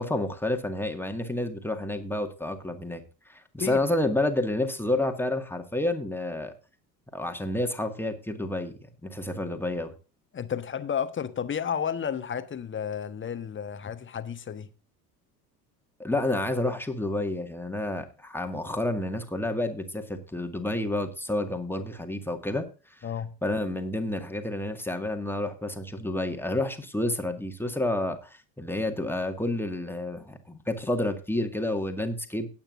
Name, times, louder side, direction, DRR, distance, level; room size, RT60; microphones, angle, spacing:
voice 1, 0.0-3.0 3.3-6.5 7.1-8.7 9.0-9.9 16.0-22.7 23.4-32.5, left 1 dB, 5° left, 1.9 m, -29 dB
voice 2, 10.3-14.7 23.0-23.3, left 8 dB, 25° left, 1.3 m, -32 dB
18.0 x 8.8 x 2.6 m
figure-of-eight pair, 65°, 49 cm